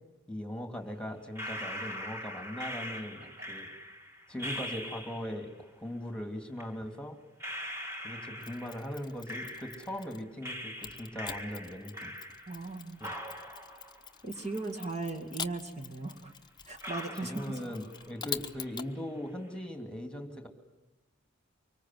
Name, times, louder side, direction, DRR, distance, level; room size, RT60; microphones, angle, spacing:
voice 1, 0.3-3.7 4.3-7.2 8.0-12.1 13.0-13.3 17.2-20.5, equal, 5° left, 4 dB, 2.8 m, -40 dB
sound 1, 1.4-5.5 6.6-6.7 7.4-10.1 10.4-12.7 13.0-15.1 15.4-15.5 16.2-16.3 16.8-18.1 18.4-19.0, equal, 15° right, 2.8 m, -42 dB
Mechanisms, 8.4-10.3 10.8-18.9, left 7 dB, 20° left, 0.9 m, -45 dB
voice 2, 12.5-13.0 14.2-16.3 16.7-17.6, right 3 dB, 35° right, 3 dB, 2.3 m, -38 dB
25.0 x 24.0 x 7.7 m, 1.0 s
head